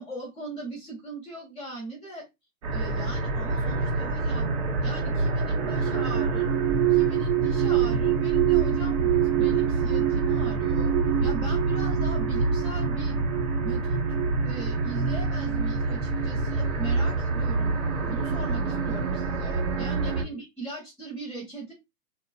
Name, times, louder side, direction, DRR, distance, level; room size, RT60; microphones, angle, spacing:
voice 1, 0.0-2.3 2.7-4.5 4.8-6.5 6.9-10.9 11.2-13.2 13.6-14.2 14.4-17.7 18.0-21.7, right 2 dB, ahead, -14 dB, 0.4 m, -39 dB
sound 1, 2.6-20.2, right 5 dB, 50° right, 1.3 m, -25 dB
2.8 x 2.7 x 2.6 m, 0.21 s
hypercardioid pair, 145°, 48 cm